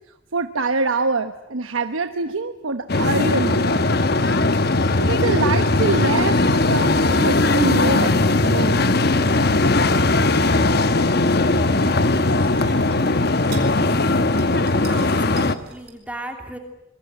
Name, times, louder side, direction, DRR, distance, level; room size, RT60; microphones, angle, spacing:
voice 1, 0.3-3.8 5.0-8.9, right 3 dB, 80° right, 8 dB, 1.1 m, -25 dB
sound 1, 2.9-15.6, left 2 dB, 50° left, 1.0 m, -19 dB
sound 2, 10.8-15.9, right 4 dB, 50° right, 5.0 m, -43 dB
voice 2, 14.9-16.6, right 1 dB, 5° right, 4 dB, 3.0 m, -37 dB
26.0 x 22.5 x 7.8 m, 0.90 s
head